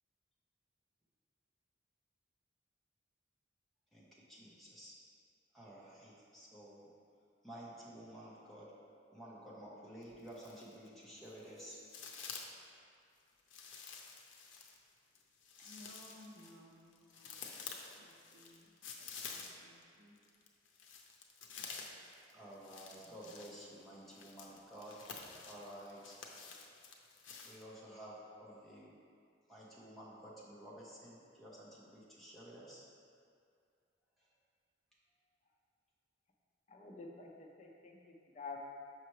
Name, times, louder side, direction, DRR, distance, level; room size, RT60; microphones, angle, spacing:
voice 1, 3.9-4.9 5.5-6.9 7.4-8.7 9.1-11.8 22.3-26.2 27.4-28.9 29.5-32.8 34.2-34.3, right 1 dB, ahead, -7 dB, 1.0 m, -52 dB
sound 1, 10.0-10.9 11.2-12.7 13.5-19.8 20.2-27.6, left 5 dB, 80° left, 0.6 m, -50 dB
voice 2, 15.6-17.6 18.0-20.2, left 1 dB, 60° right, 0 dB, 0.7 m, -60 dB
voice 3, 36.7-38.6, left 4 dB, 35° left, -1 dB, 0.6 m, -49 dB
5.9 x 5.5 x 3.2 m, 2.4 s
head